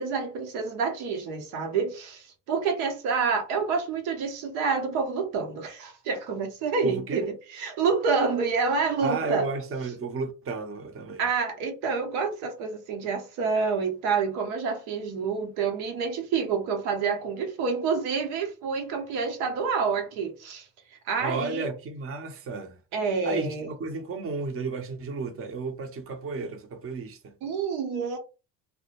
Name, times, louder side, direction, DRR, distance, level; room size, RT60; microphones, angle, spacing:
voice 1, 0.0-9.5 11.2-20.7 21.1-21.7 22.9-23.7 27.4-28.2, right 5 dB, 75° right, 0.8 m, -28 dB
voice 2, 6.8-7.3 9.0-11.2 21.2-22.8 23.2-27.3, right 4 dB, 30° right, 0.6 m, -32 dB
2.1 x 2.0 x 2.9 m
hypercardioid pair, 60°, 48 cm